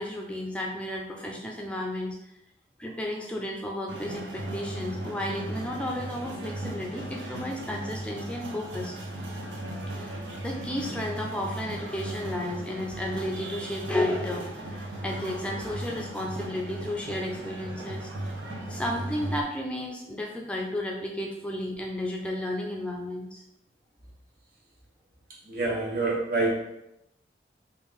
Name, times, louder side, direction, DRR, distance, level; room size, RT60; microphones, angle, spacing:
voice 1, 0.0-2.2 2.8-8.9 9.9-18.2 18.7-23.4, left 1 dB, 5° left, -1 dB, 0.4 m, -33 dB
Marrakesh Ambient loop, 3.9-19.4, right 1 dB, 90° right, 0.7 m, -37 dB
voice 2, 25.5-26.5, right 3 dB, 55° right, -4 dB, 1.0 m, -26 dB
3.2 x 2.6 x 3.5 m, 0.85 s
head